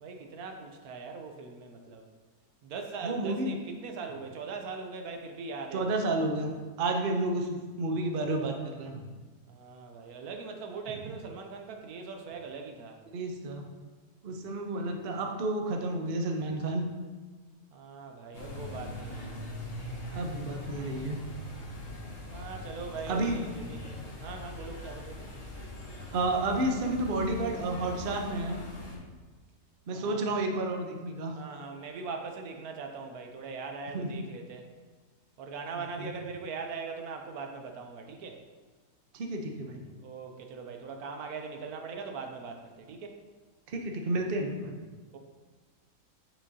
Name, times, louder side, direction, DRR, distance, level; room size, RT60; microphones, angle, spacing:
voice 1, 0.0-2.0 2.6-5.9 9.5-13.0 17.7-19.3 22.3-25.3 29.9-30.5 31.3-34.7 35.4-38.4 40.0-43.2 45.1-45.2, right 4 dB, 75° right, 4 dB, 1.2 m, -41 dB
voice 2, 3.0-3.6 5.7-6.5 6.8-9.0 13.1-13.6 14.2-16.8 20.1-21.2 23.1-23.4 26.1-28.6 29.9-31.3 33.9-34.1 36.0-36.1 39.1-39.8 43.7-44.7, right 2 dB, 50° right, 2 dB, 0.7 m, -31 dB
sound 1, 18.3-29.0, left 1 dB, 55° left, 1.6 m, -41 dB
8.7 x 5.0 x 2.7 m, 1.4 s
omnidirectional pair, 1.6 m